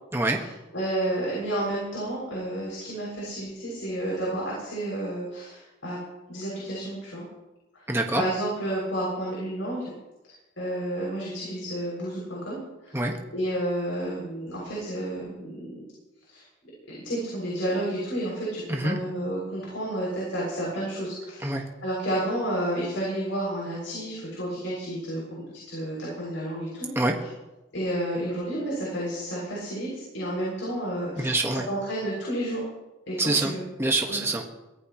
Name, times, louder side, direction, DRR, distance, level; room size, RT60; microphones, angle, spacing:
voice 1, 0.7-6.0 6.3-7.2 8.1-9.9 10.6-12.6 12.8-13.0 13.3-15.8 16.3-16.4 16.9-21.6 21.8-26.9 27.7-31.4 31.7-32.6 33.1-33.6 34.1-34.2, right 1 dB, 75° left, -4 dB, 7.1 m, -31 dB
voice 2, 7.9-8.2 12.9-13.1 18.7-19.0 21.4-21.6 26.9-27.1 31.2-31.7 33.2-33.5 33.8-34.6, right 2 dB, 10° right, 1 dB, 1.6 m, -25 dB
23.5 x 17.0 x 3.2 m, 1.0 s
head